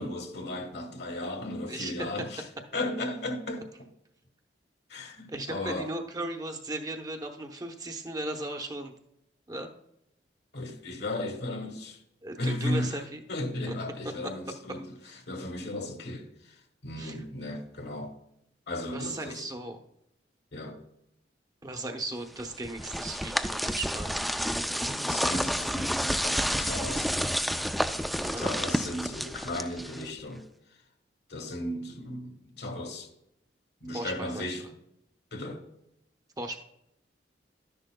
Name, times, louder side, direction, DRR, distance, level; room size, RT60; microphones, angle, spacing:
voice 1, 0.0-2.4 2.7-3.6 4.9-5.9 10.5-12.0 12.4-13.0 13.3-14.9 15.3-18.1 18.7-19.5 20.5-20.8 24.8-27.1 28.4-30.4 31.3-33.1 33.8-34.6 35.3-35.6, left 1 dB, 65° left, 1.4 m, -35 dB
voice 2, 5.3-8.9 9.5-9.7 12.2-13.2 13.7-13.8 17.0-17.2 18.9-19.8 21.6-24.3 28.2-28.4 33.9-34.7 36.4-36.6, right 2 dB, 20° right, 0.8 m, -37 dB
sound 1, 22.4-30.2, equal, ahead, 0.3 m, -30 dB
12.0 x 10.5 x 2.2 m
head